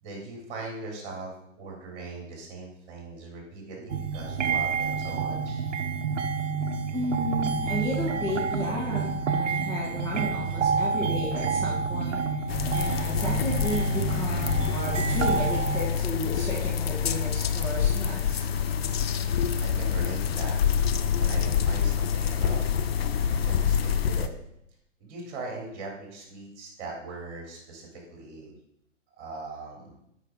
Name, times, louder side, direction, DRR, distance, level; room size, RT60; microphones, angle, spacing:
voice 1, 0.0-5.6 19.6-22.7 23.4-24.3 25.0-28.5 29.2-29.9, right 3 dB, 35° right, -1 dB, 3.7 m, -40 dB
sound 1, 3.9-15.9, right 5 dB, 65° right, 1.0 m, -28 dB
voice 2, 6.9-18.5, equal, 10° left, -6 dB, 1.7 m, -33 dB
sound 2, 12.5-24.3, left 7 dB, 50° left, 0.7 m, -26 dB
12.5 x 6.1 x 3.9 m, 0.78 s
figure-of-eight pair, 125°, 38 cm